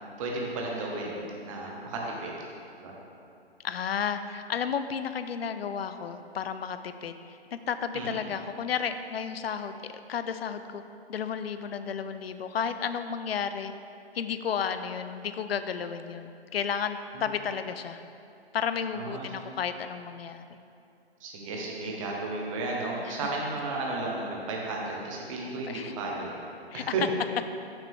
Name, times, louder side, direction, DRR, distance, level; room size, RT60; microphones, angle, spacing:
voice 1, 0.2-2.3 2.8-3.0 7.9-8.3 17.1-17.3 18.9-19.3 21.2-26.3 26.7-27.0, right 3 dB, 30° right, -2 dB, 0.9 m, -33 dB
voice 2, 3.6-9.8 10.1-10.8 11.1-13.7 14.1-18.0 18.5-20.4 23.0-23.3 25.7-25.9 26.7-26.8, left 7 dB, 70° left, 10 dB, 0.4 m, -32 dB
6.0 x 5.2 x 3.6 m, 2.5 s
figure-of-eight pair, 135°, 32 cm